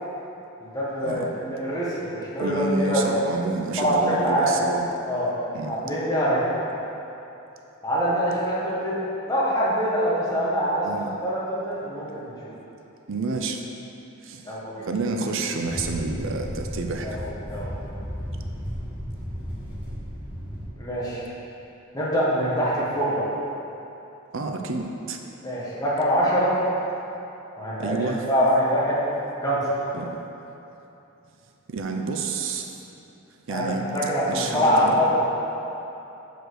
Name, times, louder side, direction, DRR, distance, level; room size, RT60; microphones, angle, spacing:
voice 1, 0.6-3.0 3.8-4.6 5.1-5.3 5.6-6.4 7.8-10.9 11.2-12.5 14.4-14.8 17.0-17.7 20.8-21.3 21.9-23.2 25.4-26.5 27.6-29.0 29.4-29.6 33.5-35.3, equal, 15° left, -8 dB, 1.6 m, -24 dB
voice 2, 2.4-4.8 5.5-5.8 10.8-11.1 13.1-13.6 14.2-14.5 14.9-17.2 24.3-25.2 27.8-28.3 29.9-30.2 31.7-32.8 33.5-33.9 34.3-35.0, right 3 dB, 60° right, 3 dB, 0.6 m, -29 dB
sound 1, 15.6-20.7, equal, 10° right, 1.7 m, -34 dB
6.0 x 5.1 x 6.4 m, 2.9 s
head